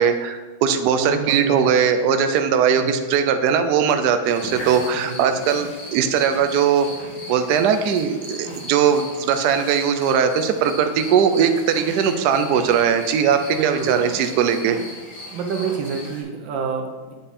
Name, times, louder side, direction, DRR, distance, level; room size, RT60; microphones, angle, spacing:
voice 1, 0.0-6.9 7.3-14.8, right 7 dB, 85° right, 8 dB, 0.9 m, -19 dB
voice 2, 0.9-1.7 2.8-3.0 5.0-5.5 13.6-14.1 15.3-17.1, right 5 dB, 65° right, 2 dB, 1.6 m, -28 dB
sound 1, 4.3-16.2, left 1 dB, 60° left, 2.4 m, -37 dB
8.5 x 5.4 x 4.1 m, 1.3 s
omnidirectional pair, 2.4 m